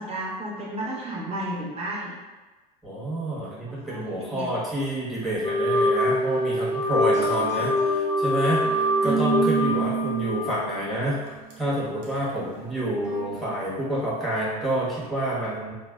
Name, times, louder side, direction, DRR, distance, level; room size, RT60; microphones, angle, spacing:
voice 1, 0.0-2.1 3.7-4.5 7.4-7.6 9.0-9.2 12.4-12.5, right 1 dB, 30° right, -6 dB, 1.1 m, -33 dB
voice 2, 2.8-11.2 11.6-15.7, right 1 dB, ahead, -9 dB, 1.3 m, -28 dB
Wind instrument woodwind instrument, 5.4-11.1, left 1 dB, 20° left, 0.5 m, -24 dB
sound 1, 7.1-10.7 11.3-11.5 12.0-12.3 13.0-13.4, right 6 dB, 80° right, 0.8 m, -30 dB
3.2 x 2.1 x 2.3 m, 1.3 s
hypercardioid pair, 85°, 21 cm